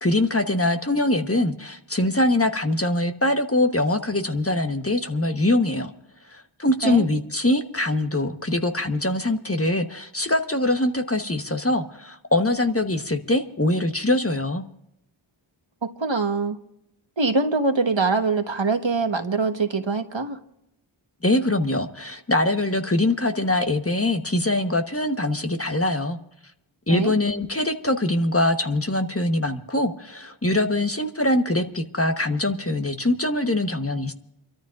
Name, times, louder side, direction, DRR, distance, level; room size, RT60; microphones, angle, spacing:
voice 1, 0.0-5.9 6.3-14.6 21.2-26.2 26.9-34.1, left 1 dB, 30° left, 5 dB, 1.3 m, -23 dB
voice 2, 15.8-16.6 17.2-20.4 26.9-27.1, right 3 dB, 65° right, 6 dB, 1.5 m, -23 dB
29.0 x 13.5 x 2.6 m, 0.81 s
wide cardioid pair, 40°, 49 cm